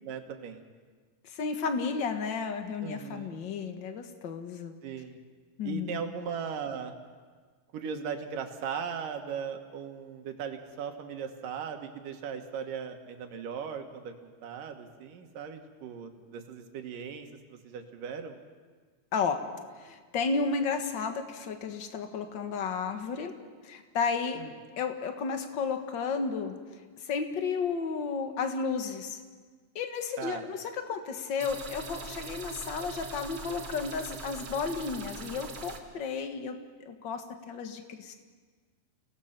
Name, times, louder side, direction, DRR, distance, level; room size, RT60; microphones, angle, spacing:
voice 1, 0.0-0.6 2.8-3.4 4.8-5.2 5.6-6.9 7.7-18.4 24.4-24.5 30.2-30.4, right 7 dB, 85° right, 5 dB, 3.1 m, -38 dB
voice 2, 1.2-4.7 5.6-6.0 19.1-19.4 19.8-23.3 23.6-24.4 24.8-26.5 27.0-29.2 29.7-38.1, left 5 dB, 45° left, 6 dB, 1.7 m, -33 dB
sound 1, 31.4-35.8, right 5 dB, 50° right, 2.5 m, -42 dB
29.5 x 18.0 x 5.9 m, 1.5 s
omnidirectional pair, 3.7 m